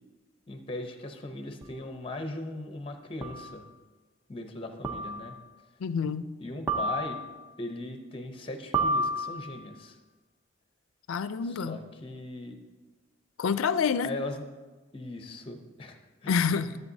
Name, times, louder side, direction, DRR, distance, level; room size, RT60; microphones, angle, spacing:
voice 1, 0.5-3.6 4.3-5.4 6.4-7.2 7.6-10.0 11.4-12.6 14.0-14.4 14.9-16.4, left 2 dB, 25° left, 5 dB, 0.7 m, -39 dB
sound 1, 1.6-1.7 3.2-3.6 4.8-5.4 6.7-7.4 8.7-9.7, right 1 dB, 10° right, 0.6 m, -30 dB
voice 2, 5.8-6.3 11.1-11.8 13.4-14.1 16.3-16.8, left 6 dB, 85° left, 13 dB, 0.4 m, -27 dB
13.5 x 8.0 x 2.7 m, 1.3 s
head